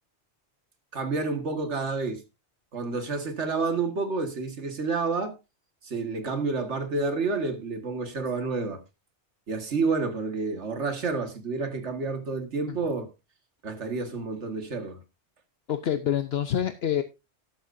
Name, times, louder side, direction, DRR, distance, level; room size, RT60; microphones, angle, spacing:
voice 1, 0.9-2.2 2.7-5.4 5.8-8.8 9.5-13.1 13.6-15.0, right 4 dB, 90° right, 2.0 m, -29 dB
voice 2, 15.7-17.0, left 10 dB, 65° left, 1.0 m, -26 dB
12.0 x 11.5 x 2.6 m
omnidirectional pair, 1.1 m